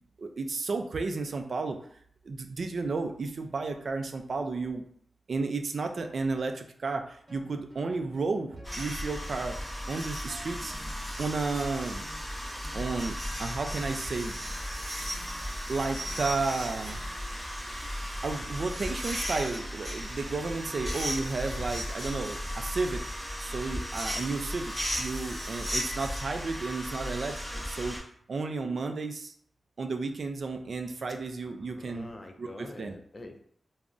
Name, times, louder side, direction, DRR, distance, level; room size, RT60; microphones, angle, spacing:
voice 1, 0.2-1.8 2.2-4.8 5.3-9.6 9.9-10.7 11.2-12.0 12.7-14.4 15.7-17.0 18.2-23.0 23.4-28.0 28.3-29.3 29.8-33.0, right 3 dB, 65° right, 6 dB, 0.3 m, -33 dB
sound 1, 7.3-21.0, equal, 40° right, 1.0 m, -53 dB
sound 2, 8.6-28.0, equal, ahead, 0.7 m, -35 dB
voice 2, 31.4-33.4, left 2 dB, 35° left, 4 dB, 0.4 m, -46 dB
3.5 x 2.0 x 2.5 m, 0.63 s
wide cardioid pair, 90°, 0 cm